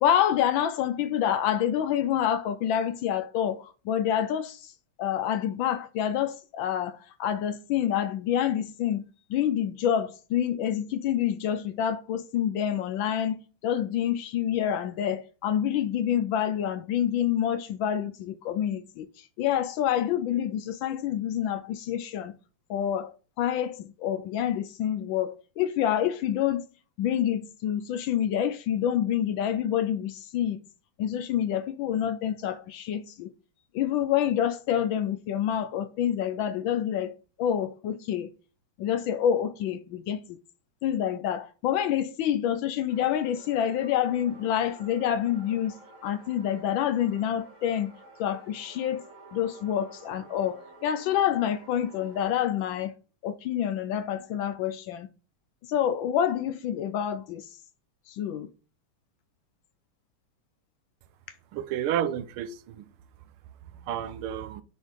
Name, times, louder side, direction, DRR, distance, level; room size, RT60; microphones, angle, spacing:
voice 1, 0.0-4.7 5.0-9.0 9.3-13.4 13.6-22.4 22.7-26.6 27.0-30.6 31.0-33.3 33.7-38.3 38.8-40.4 40.8-47.9 48.2-49.0 49.3-52.9 53.2-55.1 55.7-57.5 58.1-58.5, left 10 dB, 75° left, 1.2 m, -27 dB
sound 1, 42.9-52.2, right 2 dB, 20° right, 1.8 m, -51 dB
voice 2, 61.5-62.9 63.9-64.6, right 10 dB, 80° right, 1.5 m, -31 dB
9.5 x 4.7 x 3.4 m
omnidirectional pair, 2.4 m